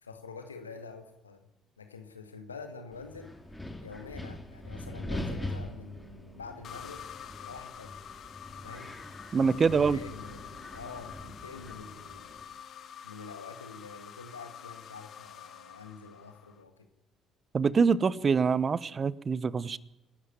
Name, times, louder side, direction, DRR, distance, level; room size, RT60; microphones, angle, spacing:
voice 1, 0.0-1.5 1.8-3.4 3.8-7.1 7.4-8.0 8.6-9.0 9.3-12.4 12.6-12.7 13.0-16.9, left 4 dB, 85° left, 6 dB, 2.0 m, -46 dB
Wind, 2.9-12.4, left 1 dB, 10° left, 4.9 m, -42 dB
sound 1, 6.6-16.6, left 9 dB, 50° left, 1.5 m, -47 dB
voice 2, 9.3-10.0 17.5-19.8, right 5 dB, 35° right, 20 dB, 0.9 m, -25 dB
27.5 x 12.5 x 9.8 m, 0.87 s
figure-of-eight pair, 50°, 0 cm